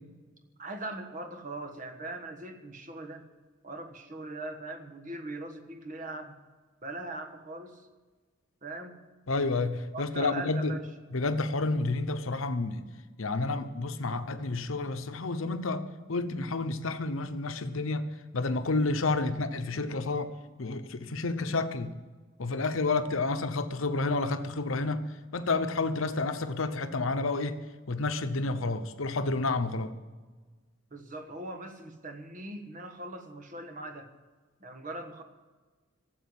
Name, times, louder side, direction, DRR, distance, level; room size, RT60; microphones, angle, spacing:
voice 1, 0.6-3.2 3.6-6.4 6.8-7.8 8.6-9.0 9.9-10.9 30.9-34.1 34.6-35.2, right 2 dB, 40° right, 6 dB, 1.4 m, -40 dB
voice 2, 9.3-10.7 11.1-12.8 13.2-15.8 16.1-18.1 18.3-20.3 20.6-21.9 22.4-25.0 25.3-27.6 27.9-29.9, left 3 dB, 75° left, 9 dB, 0.9 m, -30 dB
12.5 x 7.8 x 9.6 m, 1.3 s
head